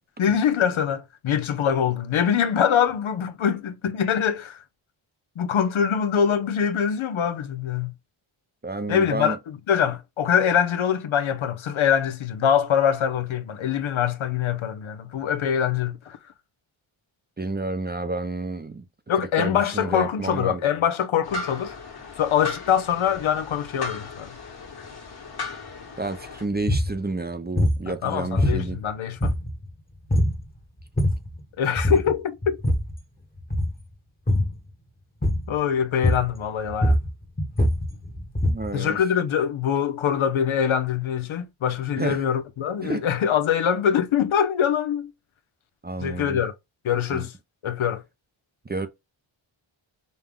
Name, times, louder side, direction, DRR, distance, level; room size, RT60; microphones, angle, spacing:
voice 1, 0.2-4.6 5.4-7.9 8.9-16.2 19.1-21.8 22.2-24.3 27.9-29.3 31.6-32.6 35.5-37.0 38.7-45.1 46.0-46.5 46.8-47.3 47.6-48.0, left 8 dB, 75° left, 0.8 m, -24 dB
voice 2, 8.6-9.4 17.4-18.8 19.4-20.8 26.0-28.8 38.5-39.0 42.0-42.2 42.8-43.0 45.8-46.4 47.1-47.3 48.7-48.9, right 3 dB, 20° right, 0.5 m, -30 dB
sound 1, 21.2-26.4, left 3 dB, 50° left, 1.7 m, -36 dB
sound 2, 26.7-26.9 27.6-27.9 28.4-28.9 29.2-29.7 30.1-30.4 30.8-31.3 31.8-32.1 32.4-33.0 33.4-33.8 34.3-34.6 35.2-35.6 36.0-36.4 36.7-38.7, left 1 dB, 20° left, 1.2 m, -23 dB
5.5 x 2.2 x 3.5 m
wide cardioid pair, 105°, 49 cm